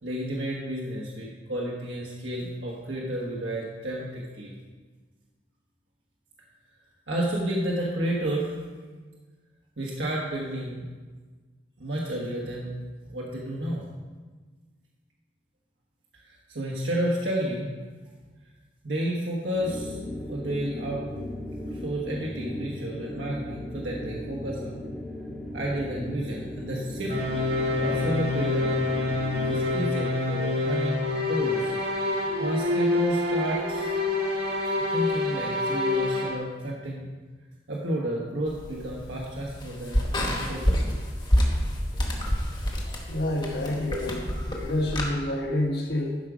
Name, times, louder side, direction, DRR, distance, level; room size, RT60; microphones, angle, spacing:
voice 1, 0.0-4.5 7.1-8.5 9.8-10.9 11.8-12.7 13.1-13.8 16.2-17.7 18.8-21.0 21.7-24.8 25.5-27.1 27.8-28.7 29.4-31.7 32.4-33.9 34.9-37.1 37.7-40.9, right 1 dB, 80° right, -4 dB, 1.4 m, -31 dB
sound 1, 19.5-29.9, left 1 dB, ahead, 0.9 m, -37 dB
sound 2, 27.1-36.4, left 2 dB, 55° right, 1.5 m, -27 dB
sound 3, 38.5-45.1, equal, 25° left, 1.2 m, -28 dB
voice 2, 43.1-46.2, left 1 dB, 60° left, 1 dB, 1.3 m, -28 dB
12.0 x 5.2 x 5.0 m, 1.4 s
head